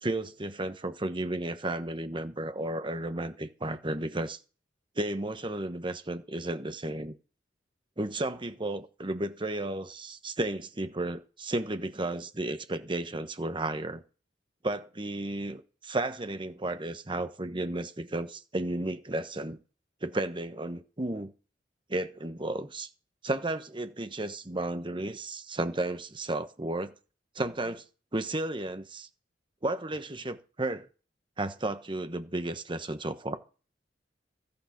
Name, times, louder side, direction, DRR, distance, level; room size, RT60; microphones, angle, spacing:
voice 1, 0.0-4.4 5.0-7.1 8.0-14.0 14.6-19.6 20.0-21.3 21.9-22.9 23.2-26.9 27.3-27.8 28.1-29.1 29.6-30.9 31.4-33.4, right 2 dB, 25° right, 1.1 m, -33 dB
13.5 x 8.7 x 5.9 m
head